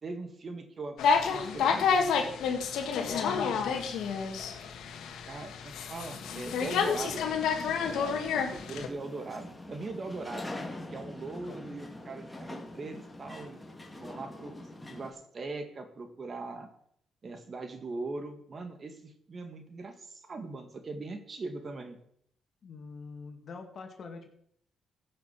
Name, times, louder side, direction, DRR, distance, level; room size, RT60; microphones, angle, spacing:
voice 1, 0.0-2.4 3.1-4.1 5.2-7.4 7.8-10.5 10.9-13.6 13.9-14.6 14.9-16.7 17.2-22.0, right 3 dB, 40° right, 7 dB, 2.0 m, -41 dB
sound 1, 1.0-8.9, left 6 dB, 80° left, 1.7 m, -29 dB
sound 2, 6.2-15.1, left 1 dB, 10° left, 2.2 m, -44 dB
voice 2, 11.5-11.8 22.6-24.3, left 4 dB, 55° left, 4 dB, 2.3 m, -45 dB
15.5 x 6.6 x 6.2 m, 0.69 s
cardioid pair, 90°, 0 cm